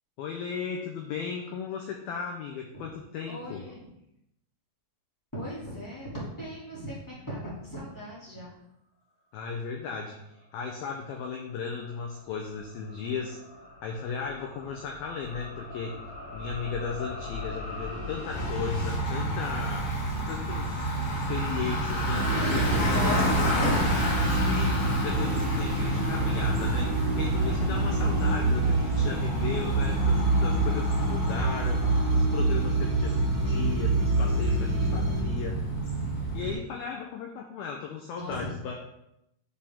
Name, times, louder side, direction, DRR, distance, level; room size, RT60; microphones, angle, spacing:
voice 1, 0.2-3.7 9.3-13.4 13.8-16.0 16.3-19.9 20.3-20.8 21.3-23.3 24.2-35.6 36.3-38.9, left 6 dB, 85° left, 1 dB, 2.1 m, -36 dB
voice 2, 3.2-3.9 5.3-8.5 22.4-23.9 38.1-38.5, equal, 10° left, -8 dB, 1.2 m, -35 dB
sound 1, 11.4-19.0, left 2 dB, 70° left, 5.5 m, -40 dB
Bicycle, 18.3-36.5, right 1 dB, 50° left, 1.1 m, -30 dB
sound 2, 22.1-35.2, right 2 dB, 60° right, 2.6 m, -27 dB
10.5 x 5.0 x 3.6 m, 0.81 s
omnidirectional pair, 5.3 m